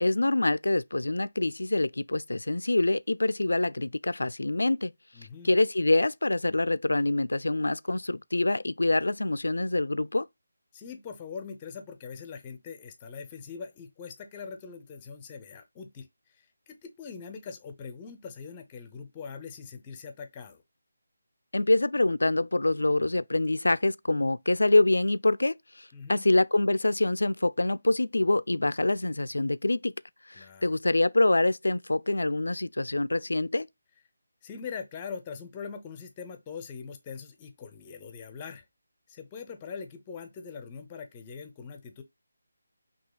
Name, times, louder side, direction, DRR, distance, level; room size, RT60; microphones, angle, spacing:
voice 1, 0.0-4.9 5.4-10.3 21.5-29.9 30.3-33.7, left 2 dB, 85° left, 0.3 m, -25 dB
voice 2, 5.1-5.5 10.7-16.1 16.4-20.6 25.9-26.3 30.4-30.7 34.4-38.6 39.1-42.0, left 6 dB, 20° left, 0.6 m, -42 dB
6.0 x 2.8 x 2.3 m
figure-of-eight pair, 165°, 0 cm